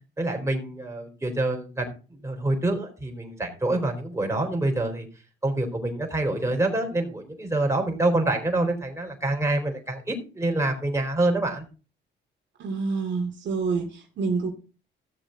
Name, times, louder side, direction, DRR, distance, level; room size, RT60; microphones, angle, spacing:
voice 1, 0.2-1.9 2.2-5.1 5.4-11.6, right 2 dB, 15° right, 4.3 m, -26 dB
voice 2, 12.6-14.5, right 4 dB, 65° right, 2.7 m, -27 dB
16.0 x 7.1 x 4.0 m
cardioid pair, 90°, 20 cm